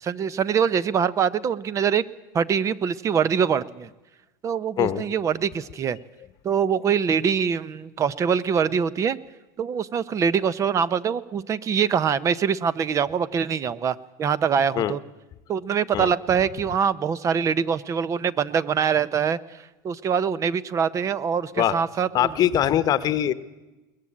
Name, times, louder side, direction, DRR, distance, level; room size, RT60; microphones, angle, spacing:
voice 1, 0.0-2.0 2.3-3.9 4.4-6.0 6.4-9.2 9.6-15.0 15.5-19.4 19.8-22.1, right 7 dB, 30° right, 18 dB, 0.9 m, -24 dB
voice 2, 4.8-5.1 14.7-15.0 15.9-16.1 21.6-21.8 22.1-23.3, left 11 dB, 35° left, 14 dB, 1.1 m, -22 dB
22.0 x 19.0 x 8.7 m, 1.1 s
supercardioid pair, 125°, 11 cm